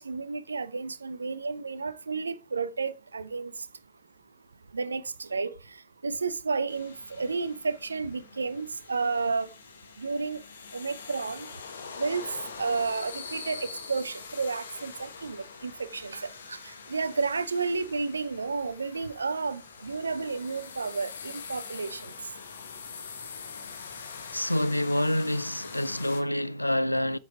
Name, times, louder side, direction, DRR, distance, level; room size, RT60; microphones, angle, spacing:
voice 1, 0.0-3.5 4.7-5.5 6.0-9.5 10.0-10.4 10.7-11.5 12.0-12.2 12.6-22.1, right 4 dB, 75° right, 0.6 m, -31 dB
sound 1, 6.7-26.2, left 5 dB, 70° left, 1.4 m, -44 dB
voice 2, 24.3-27.2, left 1 dB, 85° left, 0.3 m, -27 dB
8.5 x 6.6 x 4.8 m
figure-of-eight pair, 90°, 0 cm